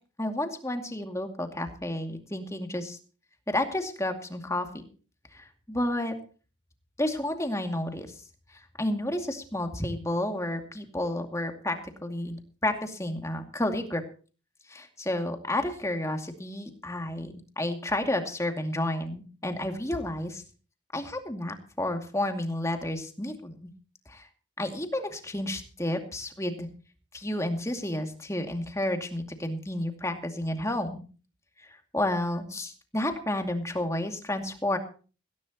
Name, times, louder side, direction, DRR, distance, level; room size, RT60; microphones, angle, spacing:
voice 1, 0.2-3.0 3.5-4.8 5.3-6.1 7.0-8.1 8.8-11.8 12.0-14.0 14.7-20.4 20.9-23.7 24.1-24.3 24.6-26.7 27.1-31.0 31.6-34.8, left 1 dB, 15° left, 5 dB, 2.4 m, -31 dB
18.0 x 17.5 x 3.0 m, 0.38 s
head